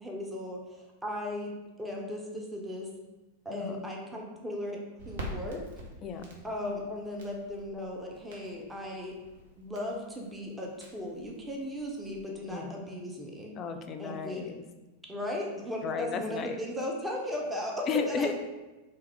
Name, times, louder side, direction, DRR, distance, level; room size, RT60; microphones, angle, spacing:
voice 1, 0.0-1.5 1.8-2.9 3.4-4.8 5.1-5.6 6.4-9.1 9.6-13.6 14.0-14.4 15.1-18.3, left 1 dB, 10° right, -1 dB, 0.6 m, -36 dB
Crackle, 5.0-12.3, right 1 dB, 60° right, 0.8 m, -47 dB
voice 2, 6.0-6.4 12.5-12.8 13.5-14.6 15.8-16.6 17.9-18.3, left 6 dB, 30° left, 7 dB, 0.3 m, -34 dB
3.5 x 2.8 x 3.4 m, 1.1 s
figure-of-eight pair, 90°, 0 cm